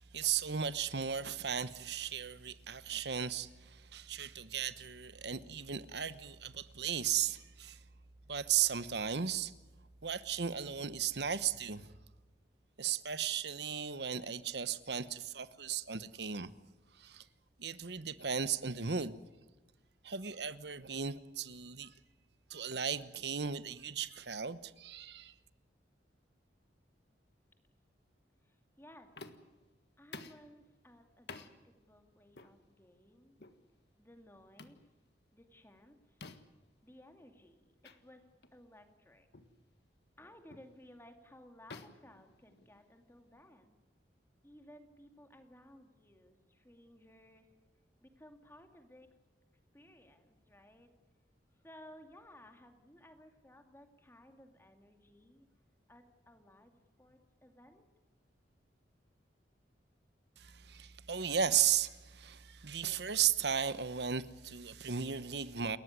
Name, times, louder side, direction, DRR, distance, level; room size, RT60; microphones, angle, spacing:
voice 1, 0.1-7.8 8.3-9.5 10.0-11.9 12.8-16.5 16.9-17.3 17.6-19.2 20.0-21.9 22.5-25.3 60.4-65.8, right 8 dB, 65° right, 1.0 m, -35 dB
voice 2, 28.4-29.1 30.0-33.3 34.0-34.8 35.3-36.2 36.8-39.3 40.2-43.8 44.4-47.5 48.0-49.1 49.7-50.9 51.5-55.5 55.9-57.9, left 1 dB, 15° left, 2.4 m, -58 dB
sound 1, 29.2-29.6 30.1-30.5 31.3-31.5 32.3-32.5 33.4-33.6 34.6-34.8 36.2-36.6 37.8-38.0 38.4-38.6 39.3-39.6 40.5-40.7 41.7-42.9, left 3 dB, 65° left, 1.6 m, -51 dB
29.0 x 14.0 x 9.7 m
head